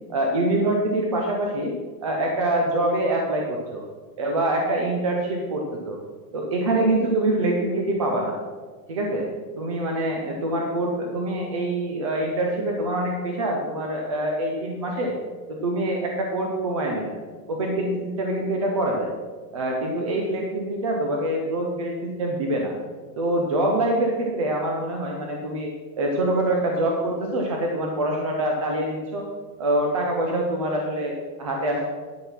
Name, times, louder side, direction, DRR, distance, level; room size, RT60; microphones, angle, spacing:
voice 1, 0.1-1.7 2.0-3.8 4.2-6.0 6.3-8.4 8.9-9.3 9.6-15.1 15.5-17.2 17.5-19.1 19.5-22.7 23.2-25.7 26.0-29.2 29.6-31.8, right 1 dB, 25° right, 0 dB, 0.3 m, -25 dB
11.5 x 5.6 x 6.0 m, 1.4 s
supercardioid pair, 170°, 49 cm